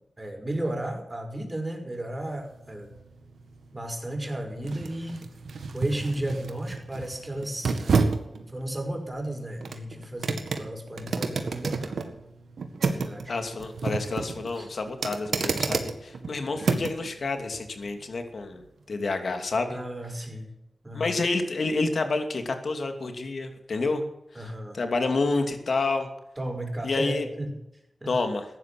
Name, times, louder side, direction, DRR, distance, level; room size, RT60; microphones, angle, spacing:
voice 1, 0.2-2.9 3.7-5.2 5.7-8.1 8.5-12.0 12.8-13.4 14.5-14.7 16.6-16.8 19.7-20.5 20.8-21.2 24.3-24.8 26.4-27.6 28.0-28.1, right 1 dB, 25° right, 3 dB, 5.5 m, -34 dB
sound 1, 2.4-17.1 17.5-17.7, right 4 dB, 80° right, 1.7 m, -31 dB
voice 2, 13.3-19.8 20.9-24.0 24.7-26.1 26.8-27.2 28.1-28.4, left 3 dB, 70° left, 6 dB, 2.6 m, -29 dB
15.0 x 11.0 x 8.5 m, 0.85 s
cardioid pair, 45°, 0 cm